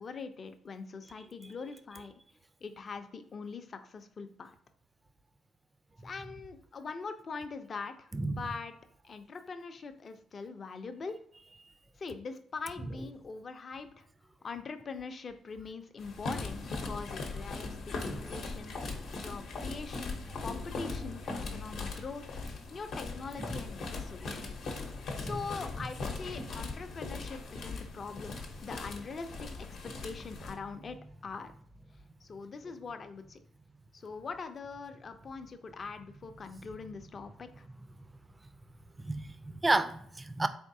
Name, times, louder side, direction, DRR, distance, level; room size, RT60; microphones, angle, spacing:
voice 1, 0.0-2.1 2.6-4.6 6.0-8.7 9.0-11.2 12.0-14.1 14.4-18.8 19.1-24.6 25.2-28.4 28.6-29.7 30.0-31.0 31.2-31.5 32.2-33.4 33.9-37.7, left 4 dB, 45° left, 0.4 m, -42 dB
sound 1, 16.0-30.5, left 3 dB, 70° left, 0.8 m, -39 dB
voice 2, 39.0-40.5, right 2 dB, 20° right, 0.3 m, -31 dB
3.9 x 3.5 x 2.6 m
cardioid pair, 90°, 0 cm